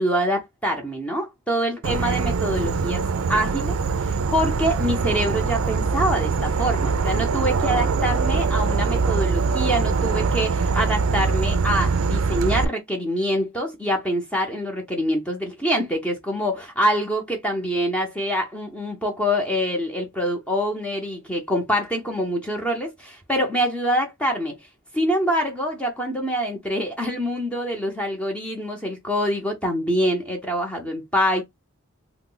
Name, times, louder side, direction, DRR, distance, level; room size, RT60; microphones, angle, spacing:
voice 1, 0.0-3.0 3.3-24.5 24.9-31.4, equal, 5° left, 0.6 m, -25 dB
Insect / Frog, 1.8-12.7, right 4 dB, 75° right, 0.4 m, -23 dB
3.1 x 2.0 x 3.7 m
head